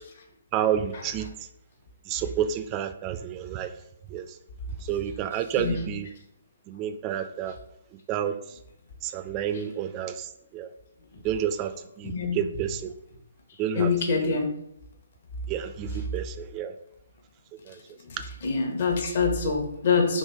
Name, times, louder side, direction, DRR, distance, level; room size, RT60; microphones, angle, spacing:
voice 1, 0.5-1.3 2.1-3.7 4.1-4.3 4.8-6.1 6.7-7.6 8.1-8.4 9.0-10.7 11.2-12.9 13.6-14.3 15.5-16.7 17.7-17.8, right 9 dB, 25° right, 9 dB, 0.3 m, -30 dB
voice 2, 5.6-5.9 12.0-12.4 13.7-14.5 18.0-18.2 18.4-20.2, left 5 dB, 50° left, 2 dB, 0.9 m, -25 dB
3.2 x 3.0 x 4.2 m, 0.78 s
figure-of-eight pair, 135°, 0 cm